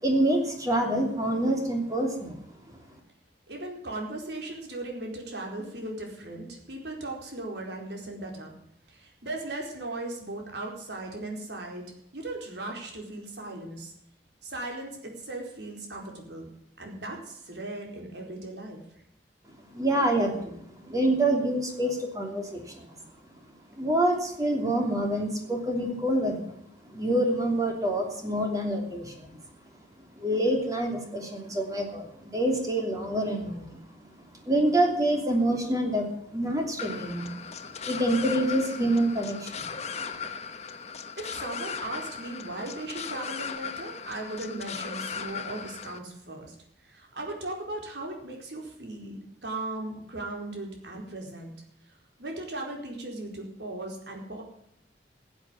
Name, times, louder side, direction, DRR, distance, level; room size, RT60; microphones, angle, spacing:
voice 1, 0.0-2.4 19.7-20.6 20.8-23.0 23.8-26.5 26.8-29.3 30.1-33.8 34.4-37.4 37.8-39.6, right 1 dB, 20° right, 2 dB, 3.0 m, -26 dB
voice 2, 3.5-8.5 8.9-13.9 14.4-16.5 16.8-18.8 41.2-46.5 46.8-51.5 52.2-54.4, right 2 dB, 65° right, 0 dB, 4.4 m, -37 dB
sound 1, 36.8-46.0, left 6 dB, 35° left, 1.1 m, -37 dB
15.5 x 8.3 x 8.5 m, 0.75 s
head